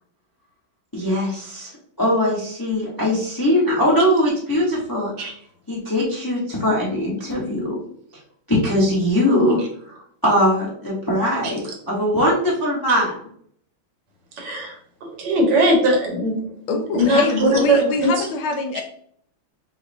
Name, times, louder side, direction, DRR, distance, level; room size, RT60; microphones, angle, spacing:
voice 1, 0.9-1.7 2.0-5.1 5.7-7.8 8.5-9.6 9.9-13.2, equal, 35° left, -6 dB, 0.3 m, -21 dB
voice 2, 14.4-14.8 15.0-16.4 16.9-18.3 18.7-18.8, right 1 dB, 80° right, 1 dB, 1.9 m, -20 dB
voice 3, 16.7-18.8, left 3 dB, 75° left, 4 dB, 1.4 m, -23 dB
6.3 x 2.1 x 2.6 m, 0.63 s
omnidirectional pair, 2.4 m